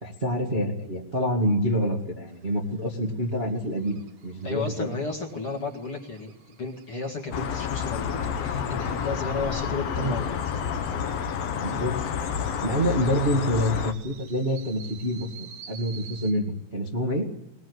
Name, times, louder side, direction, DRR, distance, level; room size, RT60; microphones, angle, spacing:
voice 1, 0.0-4.9 9.9-10.2 11.6-12.1 12.5-17.3, equal, 25° right, -1 dB, 1.5 m, -27 dB
sound 1, 2.3-16.3, right 7 dB, 60° right, 3.3 m, -51 dB
voice 2, 4.4-10.4, left 3 dB, 45° left, 0 dB, 2.1 m, -33 dB
sound 2, 7.3-13.9, left 7 dB, 70° left, 1.5 m, -29 dB
21.0 x 21.0 x 8.0 m, 0.87 s
omnidirectional pair, 4.8 m